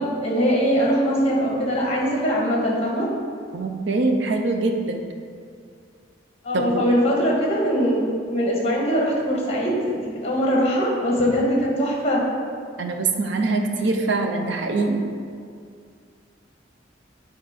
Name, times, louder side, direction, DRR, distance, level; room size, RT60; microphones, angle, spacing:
voice 1, 0.0-3.1 6.4-12.2, equal, 35° left, -3 dB, 1.5 m, -22 dB
voice 2, 3.5-5.0 6.5-6.8 12.8-15.0, right 3 dB, 70° right, 4 dB, 0.7 m, -23 dB
8.7 x 3.6 x 5.1 m, 2.3 s
head